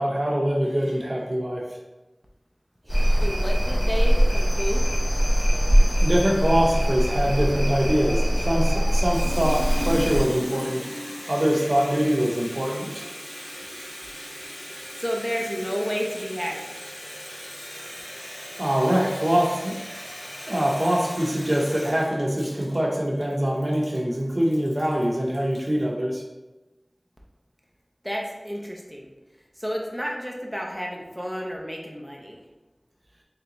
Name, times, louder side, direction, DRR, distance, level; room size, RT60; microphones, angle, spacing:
voice 1, 0.0-1.6 2.9-3.2 6.0-10.9 11.3-13.1 18.6-19.8 20.5-26.2, equal, 55° right, -2 dB, 0.7 m, -24 dB
sound 1, 2.9-10.2, equal, 70° left, 1.2 m, -21 dB
voice 2, 3.2-4.9 15.0-16.8 28.0-29.1 29.6-32.4, equal, 5° left, -1 dB, 0.6 m, -31 dB
Water tap faucet, 8.9-25.8, equal, 35° left, 0.9 m, -37 dB
3.7 x 3.3 x 2.9 m, 1.1 s
wide cardioid pair, 45°, 0 cm